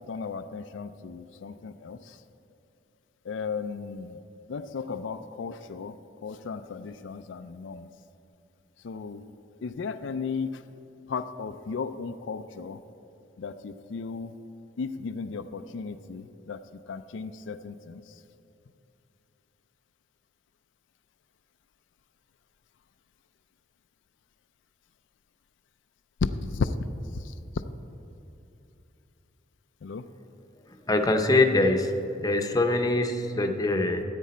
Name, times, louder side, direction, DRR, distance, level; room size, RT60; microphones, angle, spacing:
voice 1, 0.0-2.2 3.3-4.2 4.5-5.9 6.2-7.9 8.8-9.3 9.6-10.6 11.1-12.8 13.4-14.3 14.8-16.6 16.9-18.0 26.2-26.7 27.1-27.3 29.8-30.1, left 5 dB, 80° left, 10 dB, 0.4 m, -35 dB
voice 2, 30.9-31.9 32.2-34.0, left 2 dB, 20° left, 5 dB, 0.7 m, -23 dB
14.0 x 8.3 x 4.3 m, 2.8 s
head